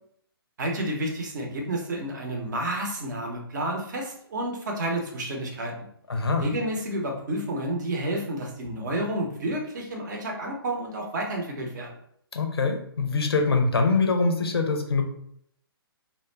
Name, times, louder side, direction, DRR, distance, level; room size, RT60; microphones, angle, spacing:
voice 1, 0.6-5.7 6.4-11.9, right 1 dB, 45° right, 1 dB, 0.7 m, -30 dB
voice 2, 6.1-6.5 12.3-15.0, left 4 dB, 75° left, 4 dB, 0.6 m, -24 dB
2.4 x 2.1 x 3.1 m, 0.70 s
figure-of-eight pair, 135°, 13 cm